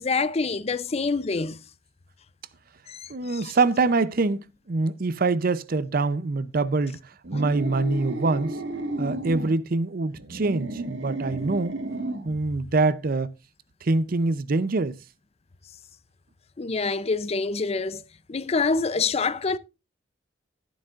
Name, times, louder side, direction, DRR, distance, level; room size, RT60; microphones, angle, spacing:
voice 1, 0.0-1.6 2.9-3.5 7.3-7.4 16.6-18.0 18.3-19.6, left 4 dB, 35° left, 0.5 m, -26 dB
voice 2, 3.1-7.0 7.3-8.6 9.0-11.8 12.2-13.3 13.8-15.0, right 3 dB, 50° right, 0.6 m, -24 dB
sound 1, 7.2-9.5 10.1-12.3, right 1 dB, 70° right, 1.6 m, -32 dB
12.5 x 11.5 x 2.5 m
head